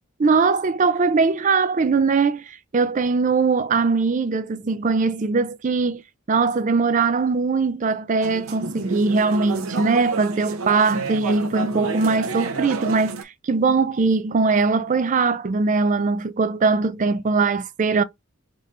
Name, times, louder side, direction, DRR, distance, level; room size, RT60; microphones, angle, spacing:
voice 1, 0.2-6.0 6.3-18.0, right 4 dB, 35° right, 0.4 m, -21 dB
sound 1, 8.2-13.2, right 4 dB, 90° right, 0.7 m, -30 dB
3.7 x 2.5 x 4.2 m
head